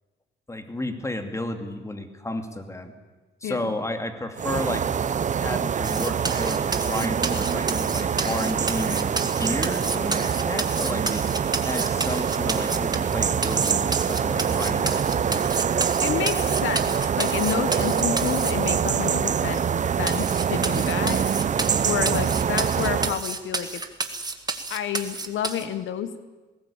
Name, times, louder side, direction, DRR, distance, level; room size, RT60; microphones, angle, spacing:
voice 1, 0.5-2.9 3.4-4.9 5.4-11.3 11.6-15.6, left 1 dB, 15° left, 6 dB, 2.5 m, -32 dB
voice 2, 3.4-3.8 16.0-19.6 20.0-21.2 21.8-23.8 24.7-26.1, left 9 dB, 80° left, 12 dB, 1.1 m, -30 dB
sound 1, 4.4-23.2, right 7 dB, 40° right, 0.7 m, -25 dB
sound 2, 5.8-13.1 13.4-18.5 19.1-19.2 19.6-19.7 20.1-25.6, right 3 dB, 20° right, 2.0 m, -30 dB
20.0 x 18.0 x 8.7 m, 1.2 s
cardioid pair, 90°, 20 cm